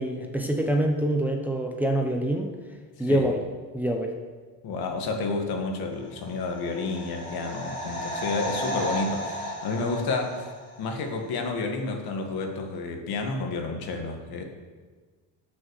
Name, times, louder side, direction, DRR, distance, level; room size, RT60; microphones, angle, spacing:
voice 1, 0.0-2.5 3.0-3.4 3.7-4.1, right 1 dB, 5° right, 2 dB, 0.8 m, -25 dB
voice 2, 4.6-10.5 10.8-14.4, left 3 dB, 65° left, 3 dB, 1.9 m, -30 dB
sound 1, 6.1-11.0 11.3-11.4, equal, 15° left, 3.4 m, -34 dB
17.5 x 6.3 x 4.8 m, 1.4 s
cardioid pair, 145°, 40 cm